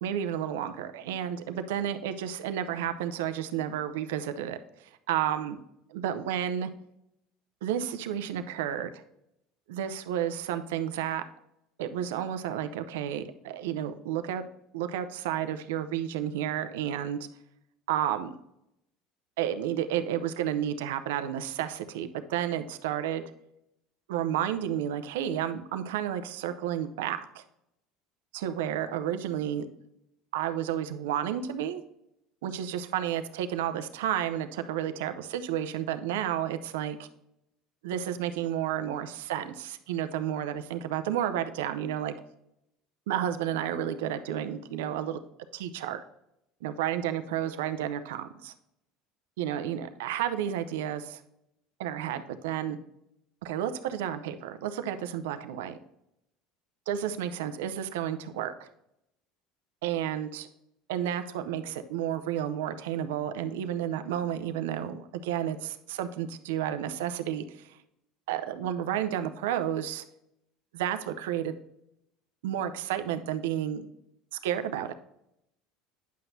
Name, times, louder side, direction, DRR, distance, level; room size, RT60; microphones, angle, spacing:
voice 1, 0.0-5.6 5.9-6.7 7.6-9.0 9.7-11.2 11.8-14.4 14.7-17.2 17.9-18.4 19.4-23.2 24.1-27.4 28.3-29.7 30.3-31.8 32.4-37.1 37.8-42.1 43.1-45.2 45.5-46.0 46.6-48.5 49.4-51.2 51.8-52.8 53.4-55.8 56.9-58.7 59.8-60.5 60.9-67.8 68.3-70.0 70.7-71.5 72.4-73.9 74.3-74.9, right 10 dB, 85° right, 9 dB, 0.6 m, -31 dB
9.4 x 5.9 x 2.7 m, 0.82 s
supercardioid pair, 95°, 0 cm